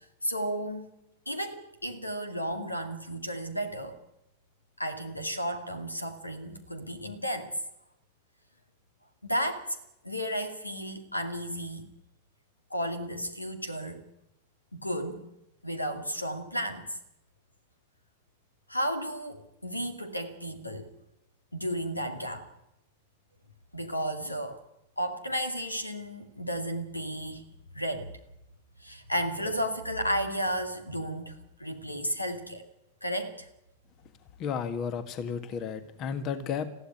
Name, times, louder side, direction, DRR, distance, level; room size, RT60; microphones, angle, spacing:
voice 1, 0.2-0.9 1.3-4.0 4.8-7.5 9.2-9.8 10.0-11.9 12.7-14.0 14.7-15.3 15.6-16.9 18.7-20.9 21.5-22.5 23.7-24.6 25.0-27.5 27.7-28.1 28.8-32.6 33.0-33.5, equal, 85° left, 9 dB, 2.2 m, -33 dB
voice 2, 34.4-36.7, left 6 dB, 35° left, 12 dB, 1.7 m, -33 dB
20.5 x 15.0 x 9.7 m, 0.89 s
figure-of-eight pair, 90°, 0 cm